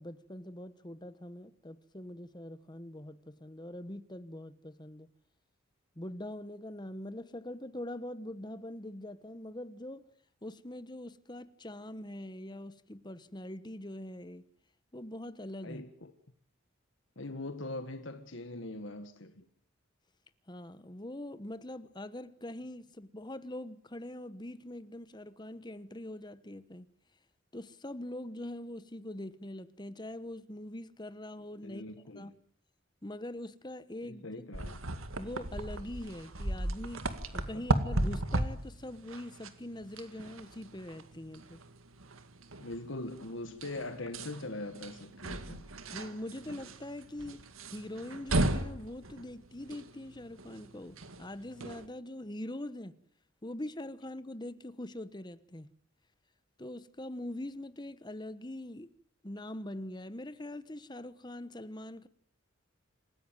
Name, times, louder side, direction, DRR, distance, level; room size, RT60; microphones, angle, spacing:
voice 1, 0.0-5.1 6.0-10.1 10.4-14.4 14.9-15.8 20.5-26.9 27.5-31.8 32.2-32.3 33.0-34.2 35.1-37.1 37.3-41.6 45.9-47.4 47.7-53.0 53.4-55.7 56.6-58.9 59.2-62.1, left 1 dB, 20° left, 1.2 m, -43 dB
voice 2, 15.6-16.1 17.1-19.5 31.6-32.3 34.0-34.8 42.6-45.7, left 2 dB, 65° left, 1.7 m, -41 dB
sound 1, 34.5-51.9, right 1 dB, 85° right, 2.1 m, -36 dB
27.5 x 16.0 x 9.2 m
head